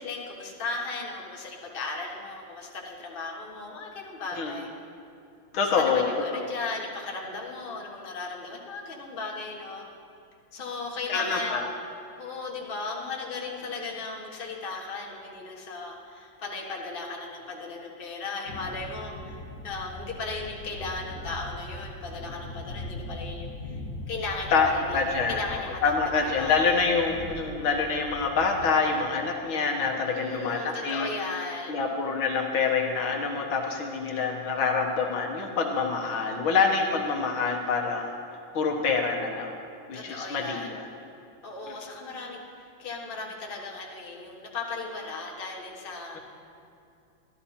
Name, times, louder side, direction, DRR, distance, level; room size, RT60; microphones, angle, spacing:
voice 1, 0.0-4.7 5.5-9.8 10.5-11.6 12.2-23.8 24.1-26.7 30.1-31.8 39.9-40.7 41.4-46.2, left 3 dB, 30° left, -2 dB, 1.4 m, -36 dB
voice 2, 5.5-6.5 11.1-11.7 24.5-25.4 25.8-31.1 31.7-38.2 38.5-39.6 39.9-40.9 41.7-41.8, left 5 dB, 80° left, 1 dB, 1.9 m, -26 dB
sound 1, 18.5-28.7, left 1 dB, 50° left, 1.7 m, -41 dB
12.5 x 12.5 x 4.3 m, 2.6 s
omnidirectional pair, 2.3 m